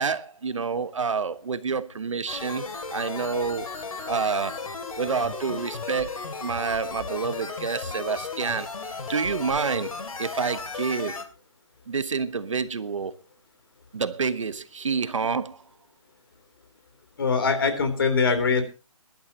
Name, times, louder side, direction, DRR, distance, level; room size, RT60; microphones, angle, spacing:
voice 1, 0.0-3.7 4.1-4.6 5.0-6.1 6.4-8.7 9.1-11.2 11.9-13.1 13.9-15.6, right 5 dB, 65° right, 1.2 m, -28 dB
sound 1, 2.3-11.2, left 4 dB, 80° left, 2.7 m, -35 dB
voice 2, 17.2-18.6, left 4 dB, 40° left, 3.4 m, -22 dB
22.5 x 12.0 x 2.9 m
hypercardioid pair, 175°, 18 cm